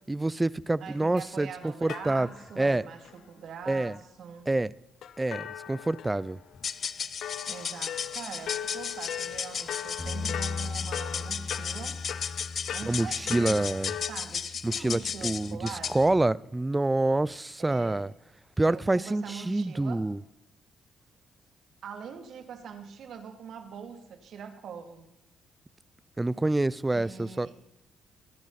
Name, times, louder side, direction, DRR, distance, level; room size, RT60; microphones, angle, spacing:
voice 1, 0.1-2.3 2.6-2.8 3.7-4.0 4.5-4.7 5.2-6.4 12.9-13.9 14.6-18.1 18.6-20.2 26.2-27.5, right 2 dB, 15° right, 0.5 m, -27 dB
voice 2, 0.8-4.5 7.5-12.0 12.7-16.0 17.6-18.1 18.7-20.0 21.8-25.1 26.9-27.6, right 6 dB, 70° right, 2.7 m, -43 dB
sound 1, 1.2-1.3 1.9-2.7 3.0-3.1 5.0-6.6 7.2-14.1, left 10 dB, 70° left, 0.9 m, -39 dB
sound 2, 6.5-16.1, left 7 dB, 50° left, 0.7 m, -35 dB
Bass guitar, 10.0-16.2, left 4 dB, 5° left, 5.0 m, -40 dB
24.5 x 10.5 x 4.2 m
cardioid pair, 90°, 0 cm